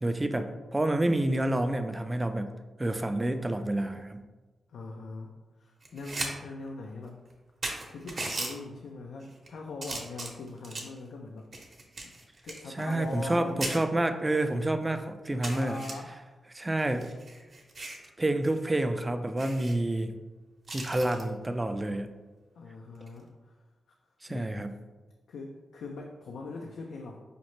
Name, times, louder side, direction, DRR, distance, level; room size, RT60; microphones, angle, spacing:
voice 1, 0.0-2.5 2.8-4.2 12.7-15.8 16.5-17.1 18.2-20.1 20.7-22.1 24.2-24.7, right 1 dB, 20° right, 8 dB, 0.3 m, -28 dB
voice 2, 4.7-5.3 5.6-7.2 7.9-11.5 12.4-13.9 15.5-16.7 22.6-23.6 24.3-24.5 25.3-27.2, left 3 dB, 85° left, 1 dB, 0.3 m, -41 dB
sound 1, 5.8-6.3 6.7-6.8 7.3-7.4 7.6-8.5 9.2-9.5 9.8-11.0 11.5-13.4 13.6-13.8 14.4-14.5 14.8-14.9 15.4-15.9 16.8-18.1 18.4-18.6 18.9-19.0 19.4-19.8 20.7-21.2 23.0-23.2, right 2 dB, 55° right, 0.7 m, -37 dB
5.0 x 2.1 x 3.0 m, 1.2 s
cardioid pair, 60°, 0 cm